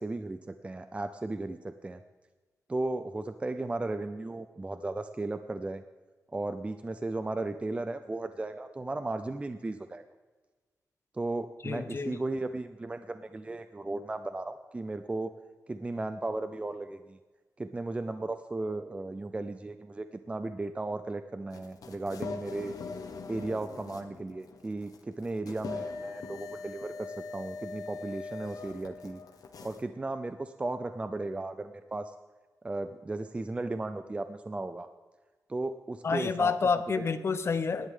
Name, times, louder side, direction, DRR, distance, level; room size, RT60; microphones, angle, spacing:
voice 1, 0.0-2.0 2.7-5.8 6.3-10.0 11.1-15.3 15.7-17.2 17.6-22.7 23.3-29.2 29.6-32.1 32.6-34.9 35.5-36.5 37.0-37.1, right 2 dB, 20° right, 10 dB, 0.4 m, -35 dB
voice 2, 11.6-12.2 36.0-37.9, left 5 dB, 45° left, 11 dB, 0.7 m, -29 dB
sound 1, 21.5-29.8, left 4 dB, 75° left, 1.3 m, -42 dB
18.0 x 11.5 x 3.6 m, 1.3 s
wide cardioid pair, 165°, 6 cm